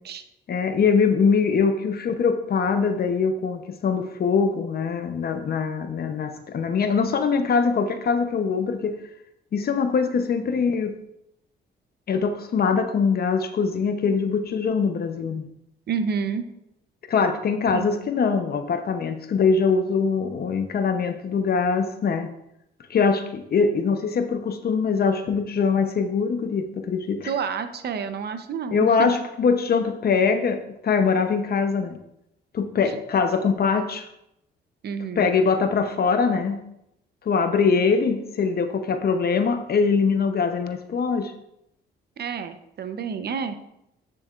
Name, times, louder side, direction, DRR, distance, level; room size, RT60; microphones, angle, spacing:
voice 1, 0.5-8.9 9.5-10.9 12.1-15.4 17.1-22.3 22.9-27.3 28.7-32.0 32.5-34.1 35.2-36.6 37.2-41.3, left 5 dB, 50° left, 7 dB, 0.8 m, -23 dB
voice 2, 15.9-16.5 17.7-17.9 27.3-29.1 34.8-35.3 42.2-43.5, right 6 dB, 55° right, 9 dB, 0.8 m, -29 dB
10.0 x 6.9 x 2.5 m, 0.81 s
cardioid pair, 90°, 20 cm